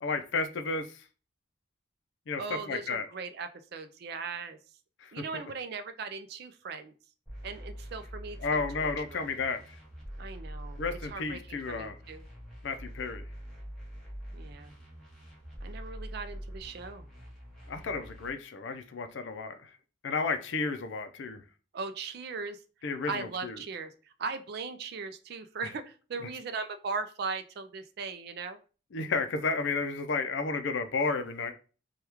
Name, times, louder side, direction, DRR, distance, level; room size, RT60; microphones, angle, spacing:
voice 1, 0.0-0.9 2.3-2.4 2.7-3.1 5.0-5.2 8.4-9.6 10.8-11.9 12.6-13.2 17.7-19.7 20.0-21.4 22.8-23.6 28.9-31.6, left 4 dB, 65° left, 8 dB, 0.4 m, -32 dB
voice 2, 2.4-4.6 5.1-6.9 7.4-9.2 10.2-12.2 14.3-14.7 15.6-17.1 21.7-28.6, right 4 dB, 55° right, 9 dB, 0.4 m, -39 dB
sound 1, 7.3-18.3, equal, ahead, 1.0 m, -44 dB
3.3 x 2.3 x 2.9 m, 0.36 s
head